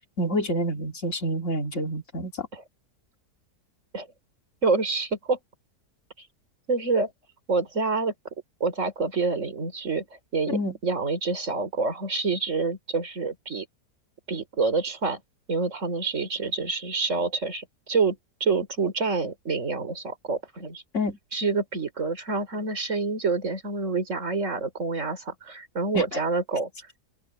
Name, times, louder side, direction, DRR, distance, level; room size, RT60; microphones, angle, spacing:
voice 1, 0.2-2.5 10.5-10.8 20.9-21.2 25.9-26.2, equal, 45° left, 3.0 m, -28 dB
voice 2, 4.6-5.4 6.7-7.1 7.5-8.1 8.6-10.1 10.3-10.6 10.8-13.7 14.3-15.2 15.5-20.8 21.3-26.7, right 4 dB, 50° right, 4.3 m, -27 dB
open air
omnidirectional pair, 1.7 m